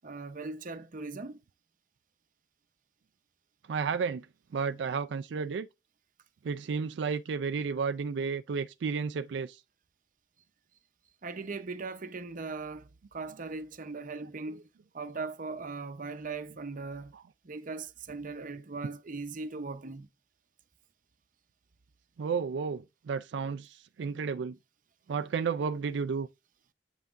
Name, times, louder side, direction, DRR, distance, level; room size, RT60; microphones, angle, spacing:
voice 1, 0.0-1.4 11.2-14.6 14.9-17.1 17.4-20.1, right 3 dB, 50° right, 0.8 m, -39 dB
voice 2, 3.7-4.3 4.5-5.7 6.4-9.6 17.1-17.2 22.2-24.6 25.1-26.3, right 5 dB, 80° right, 0.4 m, -32 dB
8.1 x 5.7 x 2.5 m
head